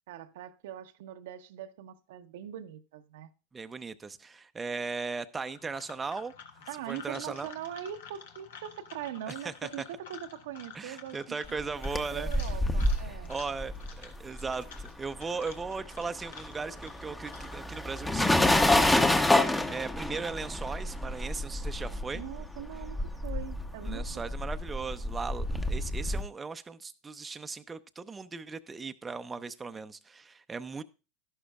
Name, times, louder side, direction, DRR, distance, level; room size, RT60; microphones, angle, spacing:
voice 1, 0.1-3.3 6.7-11.4 11.7-13.3 22.1-24.2, right 10 dB, 70° right, 0.8 m, -42 dB
voice 2, 3.5-6.3 6.9-7.5 9.3-9.7 10.7-12.3 13.3-22.2 23.8-30.8, right 4 dB, 20° right, 0.6 m, -38 dB
sound 1, 5.4-17.8, left 7 dB, 75° left, 1.3 m, -51 dB
sound 2, 11.6-15.2 15.5-26.2, left 1 dB, 10° left, 0.9 m, -28 dB
12.5 x 11.5 x 2.4 m
hypercardioid pair, 95°, 0 cm